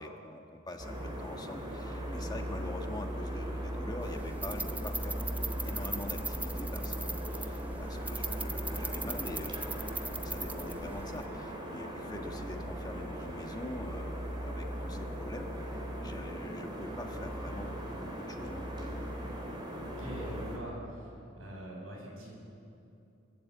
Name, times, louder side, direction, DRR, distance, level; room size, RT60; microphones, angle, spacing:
voice 1, 0.0-5.2 5.6-19.0, left 1 dB, 20° left, 4 dB, 1.3 m, -44 dB
sound 1, 0.8-20.6, equal, 25° right, 3.8 m, -38 dB
sound 2, 4.0-11.3, right 3 dB, 10° right, 0.6 m, -40 dB
voice 2, 19.8-21.1 21.4-22.3, right 1 dB, 90° right, -2 dB, 7.5 m, -43 dB
24.0 x 15.0 x 8.4 m, 2.7 s
head